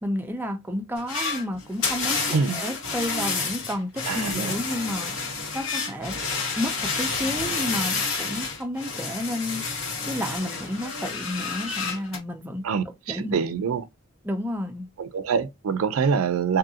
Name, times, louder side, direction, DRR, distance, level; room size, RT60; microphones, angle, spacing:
voice 1, 0.0-5.1 5.5-6.2 6.6-9.6 10.1-12.6 13.1-13.4 14.2-14.9, left 1 dB, 10° right, 0.4 m, -31 dB
sound 1, 1.0-12.2, left 4 dB, 75° left, 1.4 m, -29 dB
voice 2, 4.1-4.6 12.6-13.9 15.0-16.6, right 5 dB, 80° right, 0.4 m, -25 dB
2.7 x 2.5 x 2.6 m
head